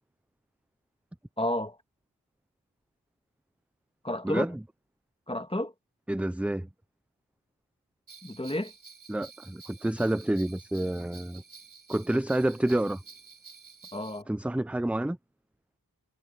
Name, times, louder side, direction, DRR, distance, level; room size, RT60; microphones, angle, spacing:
voice 1, 1.4-1.8 4.0-4.5 5.3-5.7 8.2-8.7 13.9-14.3, left 1 dB, 15° left, 1.7 m, -31 dB
voice 2, 4.2-4.6 6.1-6.7 9.1-11.4 11.9-13.0 14.3-15.2, right 1 dB, 5° right, 0.4 m, -28 dB
Bell, 8.1-14.2, right 5 dB, 55° right, 6.6 m, -51 dB
wide cardioid pair, 45°, 39 cm